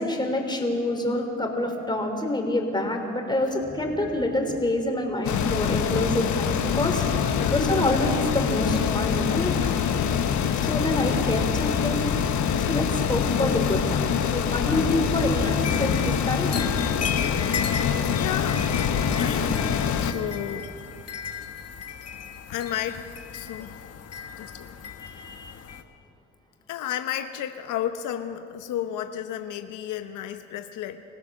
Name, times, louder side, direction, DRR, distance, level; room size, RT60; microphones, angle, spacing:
voice 1, 0.0-9.5 10.0-10.2 10.6-12.1 12.6-16.6 19.2-19.6 25.0-25.5, left 1 dB, 15° left, 3 dB, 3.7 m, -27 dB
sound 1, 3.3-15.8, equal, 15° right, 3.2 m, -44 dB
sound 2, 5.2-20.1, left 7 dB, 70° left, 1.3 m, -25 dB
sound 3, 15.4-25.8, left 6 dB, 55° left, 1.5 m, -36 dB
voice 2, 17.5-19.6 20.0-20.7 22.5-23.0 23.3-23.8 24.3-24.9 26.7-31.0, left 10 dB, 90° left, 8 dB, 1.0 m, -33 dB
26.0 x 16.5 x 6.3 m, 2.5 s
cardioid pair, 90°, 30 cm